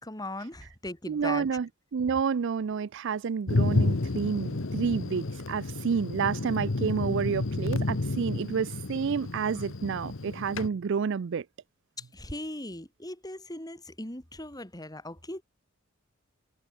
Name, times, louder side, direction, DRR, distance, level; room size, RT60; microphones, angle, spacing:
voice 1, 0.0-1.6 12.0-15.4, left 1 dB, 20° left, 4.7 m, -39 dB
voice 2, 1.1-11.4, right 6 dB, 60° right, 0.4 m, -29 dB
Thunder, 3.5-10.7, left 2 dB, 70° left, 1.1 m, -30 dB
head